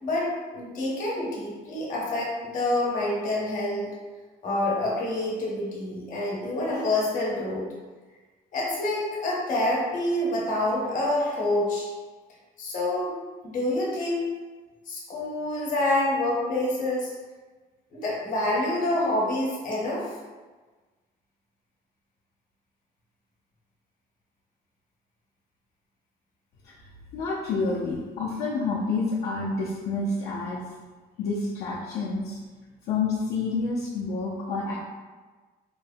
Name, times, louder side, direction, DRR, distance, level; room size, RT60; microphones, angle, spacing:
voice 1, 0.0-3.9 4.4-7.6 8.5-11.9 12.6-13.2 13.4-14.3 14.9-17.1 17.9-20.1, left 1 dB, 50° left, -3 dB, 0.9 m, -27 dB
voice 2, 27.1-30.6 31.2-32.4 32.9-34.8, left 3 dB, 75° left, -6 dB, 0.5 m, -28 dB
3.1 x 2.1 x 2.6 m, 1.3 s
cardioid pair, 110°, 17 cm